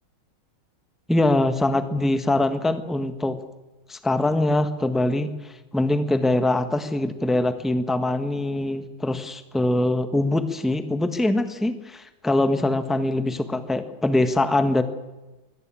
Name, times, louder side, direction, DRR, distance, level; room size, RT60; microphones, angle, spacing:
voice 1, 1.1-3.4 3.9-14.8, left 2 dB, ahead, 10 dB, 1.0 m, -23 dB
23.0 x 17.5 x 9.0 m, 1.1 s
omnidirectional pair, 2.3 m